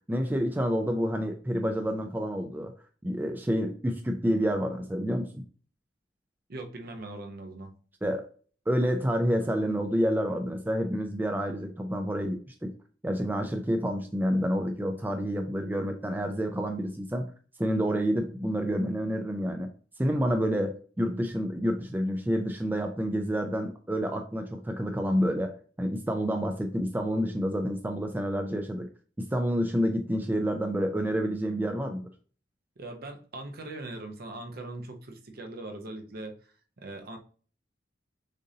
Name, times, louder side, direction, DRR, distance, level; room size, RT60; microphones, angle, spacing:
voice 1, 0.1-2.7 3.0-5.4 8.0-8.2 8.7-12.7 13.0-17.3 17.6-19.7 20.0-25.5 25.8-28.9 29.2-32.1, equal, 10° right, 4 dB, 0.4 m, -28 dB
voice 2, 6.5-7.7 32.8-37.2, right 2 dB, 55° right, 4 dB, 0.8 m, -41 dB
6.5 x 2.6 x 2.7 m, 0.40 s
head